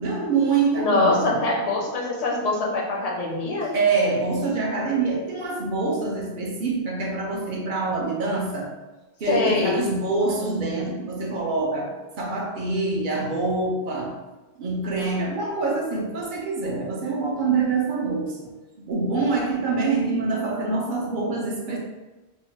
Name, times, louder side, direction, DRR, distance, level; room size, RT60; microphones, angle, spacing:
voice 1, 0.0-1.4 3.7-8.7 9.2-14.2 14.6-18.5 18.8-21.8, right 3 dB, 55° right, -2 dB, 0.6 m, -25 dB
voice 2, 0.8-3.7 9.3-9.7, left 2 dB, 45° left, -2 dB, 0.6 m, -23 dB
2.7 x 2.1 x 3.0 m, 1.1 s
omnidirectional pair, 1.1 m